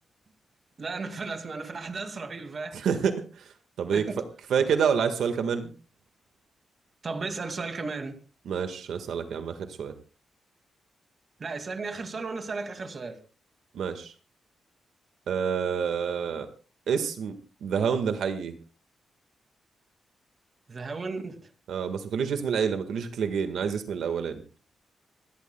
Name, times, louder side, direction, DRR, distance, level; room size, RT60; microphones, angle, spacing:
voice 1, 0.8-2.8 3.9-4.2 7.0-8.2 11.4-13.2 20.7-21.4, right 4 dB, 40° right, 2.2 m, -34 dB
voice 2, 2.7-4.0 4.5-5.7 8.4-9.9 13.7-14.1 15.3-16.5 16.9-17.3 17.6-18.6 21.7-24.4, right 7 dB, 85° right, 1.5 m, -28 dB
27.0 x 13.0 x 2.2 m
wide cardioid pair, 130°, 0 cm